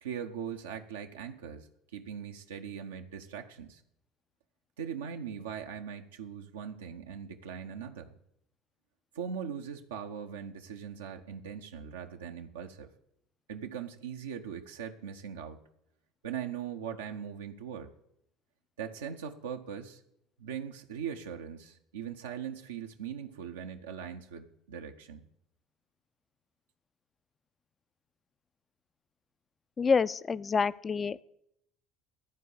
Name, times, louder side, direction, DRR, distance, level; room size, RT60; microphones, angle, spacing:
voice 1, 0.0-1.7 1.9-3.8 4.8-8.1 9.1-12.9 13.5-15.7 16.2-17.9 18.8-20.0 20.4-25.2, right 8 dB, 75° right, 4 dB, 0.6 m, -40 dB
voice 2, 29.8-31.2, left 5 dB, 30° left, 18 dB, 0.4 m, -27 dB
12.5 x 4.6 x 8.2 m, 0.76 s
figure-of-eight pair, 65°, 0 cm